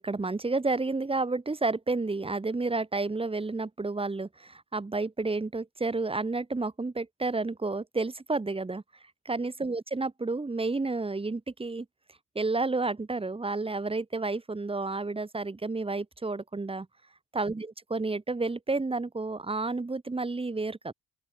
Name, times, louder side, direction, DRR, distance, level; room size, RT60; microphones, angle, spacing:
voice 1, 0.0-8.8 9.2-11.8 12.3-16.9 17.3-20.9, right 3 dB, 20° right, 1.8 m, -31 dB
open air
cardioid pair, 90°, 30 cm